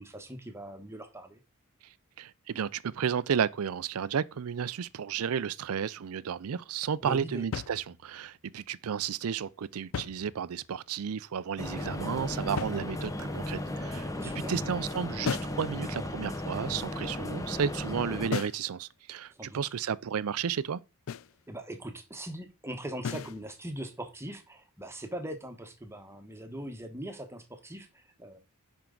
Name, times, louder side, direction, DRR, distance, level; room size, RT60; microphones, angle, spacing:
voice 1, 0.0-1.4 7.0-7.4 14.1-14.6 19.4-19.6 21.5-28.4, right 1 dB, 10° right, 1.1 m, -41 dB
voice 2, 2.2-14.1 14.5-20.8, right 7 dB, 70° right, 0.4 m, -32 dB
sound 1, 7.5-8.3 9.7-10.8 12.6-13.3 15.2-15.7 18.3-18.7 21.1-21.4 23.0-23.4, left 6 dB, 65° left, 0.4 m, -36 dB
sound 2, 11.6-18.3, left 1 dB, 15° left, 0.7 m, -35 dB
10.5 x 4.6 x 3.9 m
head